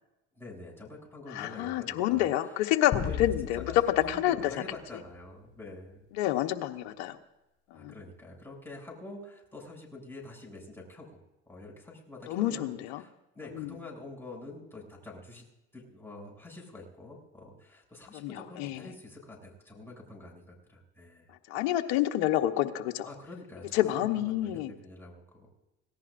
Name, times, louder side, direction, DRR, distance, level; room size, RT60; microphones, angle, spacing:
voice 1, 0.3-2.3 3.0-6.0 7.7-11.2 11.5-15.4 15.7-21.3 23.0-25.5, left 2 dB, 5° left, -2 dB, 7.1 m, -46 dB
voice 2, 1.3-3.6 4.1-4.4 6.2-7.1 7.8-7.9 12.3-13.0 13.6-13.7 18.1-18.3 18.6-18.8 21.5-23.1 23.7-24.7, left 13 dB, 80° left, 5 dB, 1.1 m, -28 dB
sound 1, 2.9-5.5, left 9 dB, 50° left, 4.6 m, -37 dB
26.0 x 18.0 x 2.6 m, 0.96 s
supercardioid pair, 85°, 33 cm